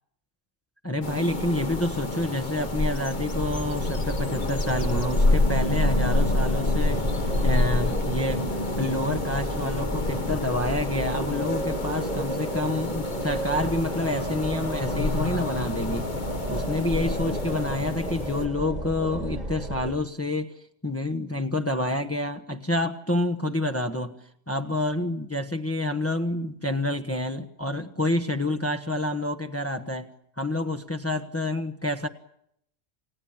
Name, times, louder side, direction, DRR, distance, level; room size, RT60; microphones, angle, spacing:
voice 1, 0.8-16.1 16.5-20.5 20.8-24.2 24.5-30.1 30.4-32.1, left 1 dB, 15° left, 8 dB, 1.2 m, -28 dB
sound 1, 1.0-18.5, left 2 dB, 45° left, 1.7 m, -28 dB
sound 2, 3.4-19.9, right 2 dB, 40° right, 2.0 m, -34 dB
29.5 x 18.5 x 8.9 m, 0.74 s
omnidirectional pair, 1.1 m